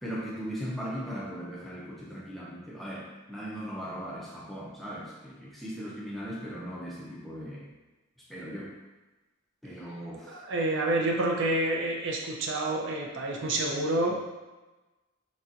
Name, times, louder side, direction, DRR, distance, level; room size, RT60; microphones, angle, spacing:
voice 1, 0.0-7.7 8.3-8.7 9.6-10.4, equal, ahead, -6 dB, 0.4 m, -38 dB
voice 2, 10.3-14.2, right 1 dB, 55° right, -1 dB, 0.5 m, -28 dB
4.0 x 2.2 x 2.5 m, 1.1 s
head